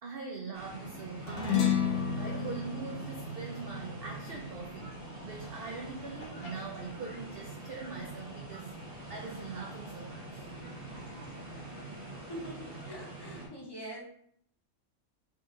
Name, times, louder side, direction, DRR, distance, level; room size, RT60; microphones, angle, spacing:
voice 1, 0.0-8.7 9.1-10.5, right 4 dB, 70° right, 0 dB, 0.5 m, -42 dB
sound 1, 0.5-13.5, right 2 dB, 25° right, 0.9 m, -45 dB
sound 2, 1.3-6.0, left 7 dB, 80° left, 1.2 m, -33 dB
sound 3, 4.3-11.8, equal, 65° left, 1.6 m, -55 dB
voice 2, 12.3-14.0, right 1 dB, 35° left, -3 dB, 0.4 m, -43 dB
3.8 x 2.6 x 3.7 m, 0.68 s
omnidirectional pair, 1.5 m